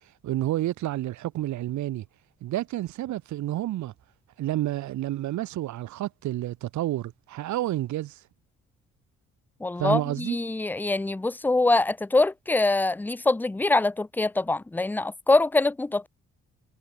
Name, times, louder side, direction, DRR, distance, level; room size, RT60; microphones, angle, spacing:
voice 1, 0.0-2.0 2.4-3.9 4.4-8.2 9.8-10.4, right 14 dB, 70° right, 0.9 m, -30 dB
voice 2, 9.6-16.1, left 2 dB, 5° left, 0.4 m, -24 dB
cardioid pair, 90°, 30 cm